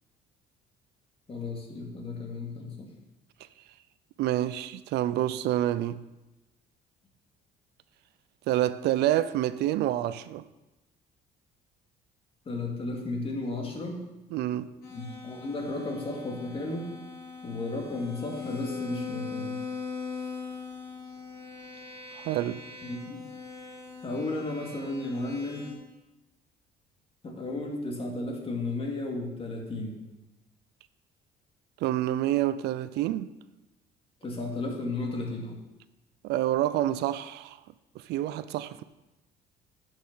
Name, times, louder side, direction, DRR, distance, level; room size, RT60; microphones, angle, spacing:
voice 1, 1.3-2.9 12.5-14.0 14.9-16.9 17.4-19.7 22.8-23.3 24.0-25.7 27.2-30.0 34.2-35.6, left 2 dB, 35° left, 2.2 m, -34 dB
voice 2, 4.2-6.0 8.5-10.4 14.3-14.7 22.1-22.6 31.8-33.3 36.2-37.6 38.0-38.8, right 13 dB, 80° right, 0.5 m, -28 dB
sound 1, 14.8-25.7, left 5 dB, 65° left, 3.3 m, -40 dB
9.9 x 6.5 x 5.6 m
cardioid pair, 110°, 17 cm